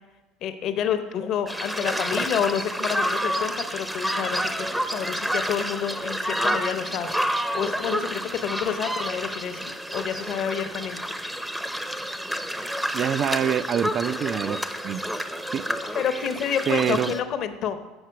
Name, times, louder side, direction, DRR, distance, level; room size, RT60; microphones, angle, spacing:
voice 1, 0.4-4.7 4.9-7.2 7.5-11.0 15.9-17.9, left 8 dB, 55° left, 9 dB, 0.7 m, -29 dB
sound 1, 1.5-17.2, equal, 5° right, 0.6 m, -29 dB
voice 2, 12.9-14.6 14.8-15.0 15.5-15.6 16.7-17.1, right 9 dB, 50° right, 15 dB, 0.3 m, -25 dB
8.0 x 5.7 x 4.6 m, 1.1 s
hypercardioid pair, 70°, 0 cm